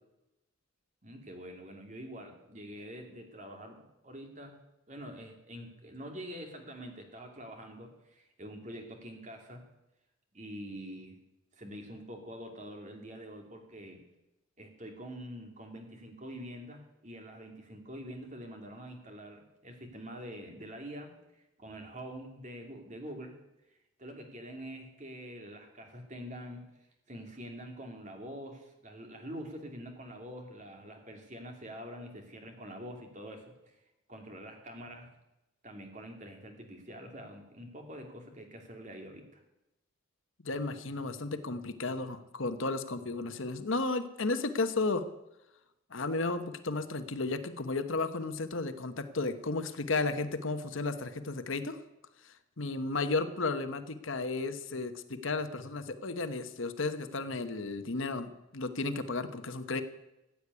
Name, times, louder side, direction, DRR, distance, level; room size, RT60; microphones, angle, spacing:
voice 1, 1.0-4.6 4.9-9.6 10.3-11.2 11.5-14.0 14.6-23.4 23.7-26.6 27.1-33.8 34.1-35.2 35.6-39.4, equal, 35° right, 3 dB, 2.7 m, -45 dB
voice 2, 40.4-45.0 45.9-51.8 52.2-59.8, left 3 dB, 70° left, 10 dB, 1.1 m, -33 dB
15.0 x 8.5 x 9.7 m, 0.92 s
head